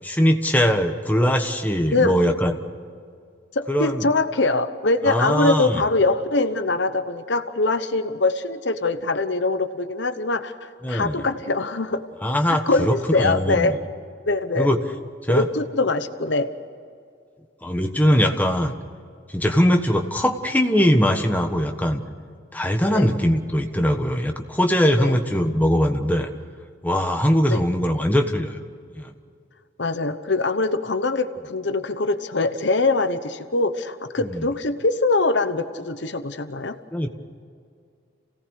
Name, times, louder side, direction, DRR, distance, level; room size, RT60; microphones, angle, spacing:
voice 1, 0.0-2.6 3.7-4.1 5.1-5.8 10.8-11.2 12.2-13.7 14.6-14.8 15.2-15.5 17.6-18.8 19.3-22.0 22.5-26.3 26.8-28.6 29.0-29.1 34.2-34.5 36.9-37.1, equal, 10° left, 4 dB, 1.3 m, -21 dB
voice 2, 3.5-12.0 12.5-13.8 14.3-14.7 15.3-16.5 22.9-23.1 25.0-25.2 27.5-27.6 29.8-36.8, left 3 dB, 65° left, 10 dB, 1.0 m, -23 dB
28.5 x 17.5 x 6.5 m, 2.3 s
head